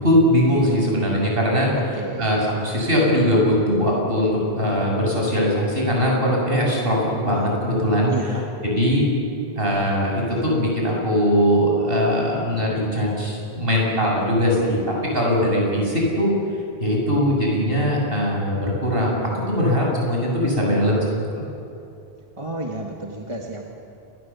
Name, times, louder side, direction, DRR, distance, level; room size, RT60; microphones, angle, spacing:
voice 1, 0.0-8.3 8.6-9.1 9.6-16.3 16.8-19.2 19.5-21.4, equal, 65° right, -2 dB, 7.4 m, -21 dB
voice 2, 1.9-2.3 8.1-8.4 22.4-23.6, right 2 dB, 30° right, 0 dB, 2.0 m, -31 dB
29.0 x 21.5 x 7.2 m, 2.7 s
omnidirectional pair, 1.0 m